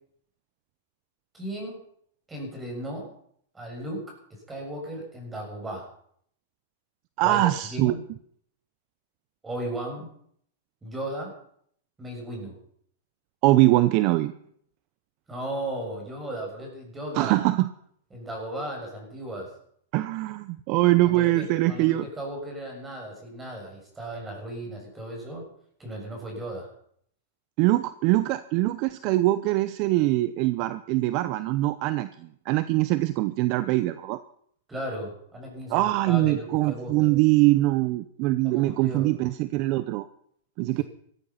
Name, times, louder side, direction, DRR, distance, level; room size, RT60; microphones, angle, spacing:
voice 1, 1.3-1.8 2.3-3.1 3.5-4.0 4.5-5.9 7.2-7.4 7.7-8.0 9.4-10.1 10.8-11.3 12.0-12.6 15.3-17.4 18.1-19.6 21.0-25.5 25.8-26.7 34.7-37.2 38.4-39.1 40.8-40.9, right 1 dB, 10° right, 0 dB, 6.9 m, -36 dB
voice 2, 7.2-7.9 13.4-14.3 17.1-17.7 19.9-22.1 27.6-34.2 35.7-40.0 40.6-40.8, right 17 dB, 40° right, 14 dB, 0.7 m, -23 dB
16.5 x 14.5 x 5.8 m, 0.65 s
hypercardioid pair, 145°, 0 cm